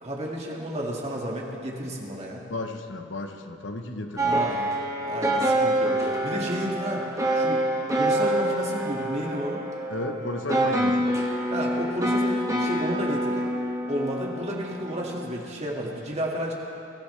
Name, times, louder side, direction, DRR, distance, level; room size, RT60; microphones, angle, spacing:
voice 1, 0.0-2.4 4.2-4.7 5.0-7.0 7.3-7.6 7.9-9.6 11.5-13.4 13.9-16.5, equal, 35° right, -2 dB, 2.0 m, -32 dB
voice 2, 2.5-4.4 9.9-11.1, left 2 dB, 75° left, 6 dB, 1.0 m, -33 dB
sound 1, 4.2-15.3, right 1 dB, 15° right, 1.2 m, -26 dB
22.5 x 13.0 x 3.3 m, 2.9 s
head